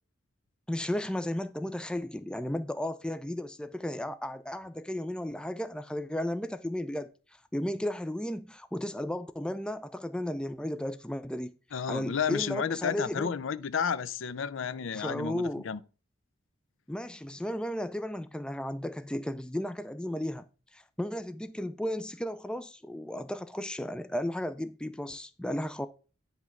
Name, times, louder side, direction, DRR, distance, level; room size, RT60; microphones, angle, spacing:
voice 1, 0.7-7.1 7.5-11.6 11.9-13.3 14.9-15.7 16.9-20.5 20.7-25.9, left 1 dB, 5° left, 0.4 m, -34 dB
voice 2, 11.7-15.8, left 7 dB, 80° left, 0.5 m, -32 dB
9.8 x 3.4 x 5.9 m
head